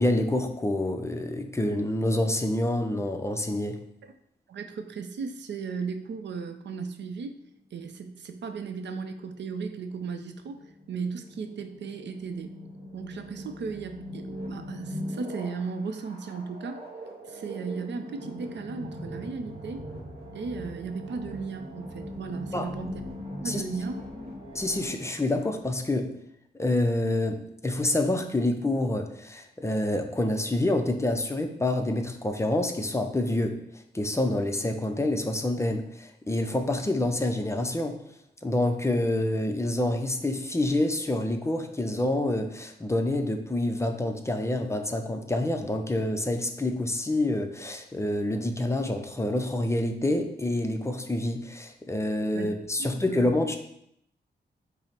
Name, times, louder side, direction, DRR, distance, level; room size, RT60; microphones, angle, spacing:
voice 1, 0.0-3.8 22.5-22.7 23.4-23.6 24.5-26.1 26.6-33.6 33.9-38.0 38.4-53.6, left 1 dB, 15° left, 5 dB, 0.4 m, -27 dB
voice 2, 4.5-7.4 7.7-10.6 10.9-12.5 12.9-16.9 17.3-19.9 20.3-23.0 23.4-24.0 52.3-52.5 52.8-53.3, right 5 dB, 80° right, 8 dB, 0.5 m, -36 dB
sound 1, 8.5-24.9, equal, 35° right, 1.2 m, -41 dB
5.7 x 2.0 x 4.2 m, 0.73 s
wide cardioid pair, 110°, 18 cm